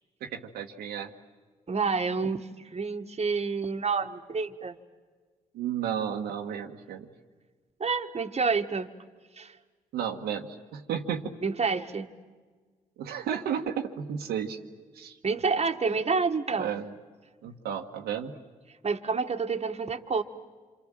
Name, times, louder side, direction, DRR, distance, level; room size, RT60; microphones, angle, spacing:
voice 1, 0.2-1.1 5.5-7.1 9.9-11.4 13.0-14.6 14.9-15.2 16.5-16.9 17.4-18.3, right 8 dB, 85° right, 2 dB, 1.3 m, -33 dB
voice 2, 1.7-4.8 7.8-8.9 9.4-9.6 11.4-12.1 15.2-16.7 18.8-20.2, right 4 dB, 40° right, 5 dB, 1.6 m, -28 dB
27.0 x 26.5 x 7.6 m, 1.5 s
supercardioid pair, 45°, 16 cm